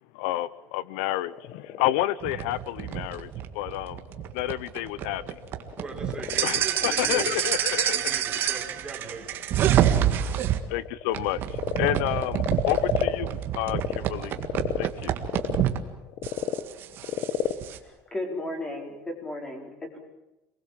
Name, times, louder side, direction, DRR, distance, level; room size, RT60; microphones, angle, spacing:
voice 1, 0.1-4.0 4.3-5.4 6.4-8.5 10.7-14.4 14.8-15.1, left 15 dB, 85° left, 19 dB, 0.8 m, -30 dB
Frog, 1.1-14.0 14.3-19.0, left 11 dB, 50° left, 1.3 m, -34 dB
sound 1, 2.2-10.6 11.1-15.8 16.2-17.8, right 11 dB, 40° right, 1.8 m, -28 dB
voice 2, 5.8-7.4 7.9-9.4, right 4 dB, 15° right, 1 dB, 4.1 m, -39 dB
voice 3, 18.1-20.0, left 1 dB, 15° left, 3 dB, 4.6 m, -34 dB
27.0 x 20.5 x 7.6 m, 0.94 s
cardioid pair, 160°, 5 cm